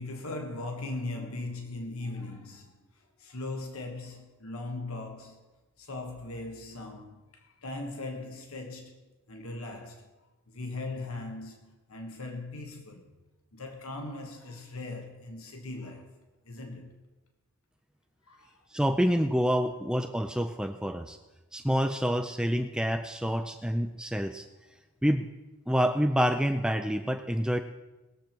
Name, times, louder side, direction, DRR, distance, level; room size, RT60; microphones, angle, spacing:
voice 1, 0.0-5.4 5.8-9.0 9.3-10.1 10.5-13.1 13.5-16.9 18.3-18.6, left 2 dB, 75° left, 1.5 m, -39 dB
voice 2, 18.7-21.2 21.5-24.5 25.0-25.3 25.7-27.6, equal, 5° right, 0.4 m, -27 dB
20.0 x 7.4 x 4.6 m
head